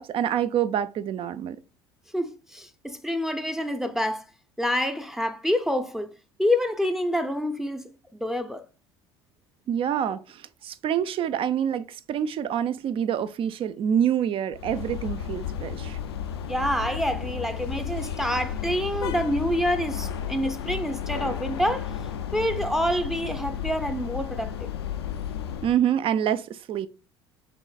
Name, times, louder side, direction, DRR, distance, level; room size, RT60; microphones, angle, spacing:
voice 1, 0.0-1.6 9.7-16.0 25.6-26.9, right 9 dB, 45° right, 0.5 m, -26 dB
voice 2, 2.1-4.3 4.6-6.1 6.4-8.6 16.5-21.9 22.3-24.7, equal, 5° right, 0.6 m, -27 dB
sound 1, 14.5-25.7, left 8 dB, 85° left, 0.5 m, -33 dB
6.0 x 3.2 x 2.4 m
hypercardioid pair, 65°, 13 cm